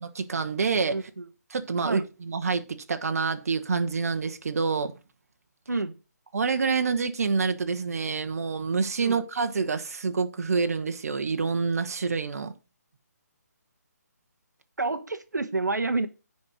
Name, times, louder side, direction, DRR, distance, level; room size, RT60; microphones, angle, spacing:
voice 1, 0.0-1.1 1.5-4.9 6.3-12.5, right 5 dB, 60° right, 1.1 m, -27 dB
voice 2, 0.9-1.3 1.8-2.0 5.7-5.9 9.0-9.2 14.8-16.1, right 3 dB, 85° right, 1.1 m, -28 dB
9.8 x 4.4 x 6.1 m
figure-of-eight pair, 145°, 9 cm